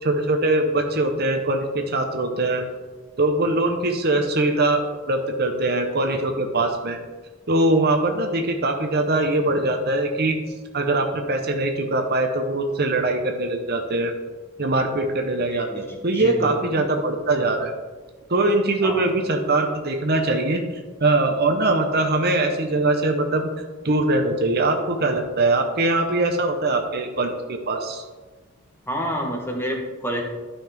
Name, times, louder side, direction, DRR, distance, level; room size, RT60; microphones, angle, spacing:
voice 1, 0.0-2.6 3.2-7.0 7.5-10.4 10.7-14.1 14.6-17.7 18.3-20.6 21.0-23.5 23.8-28.0, right 2 dB, 50° right, 4 dB, 0.9 m, -22 dB
voice 2, 15.5-17.0 18.8-19.1 28.9-30.2, equal, 10° left, 0 dB, 1.2 m, -29 dB
12.0 x 5.7 x 3.5 m, 1.3 s
head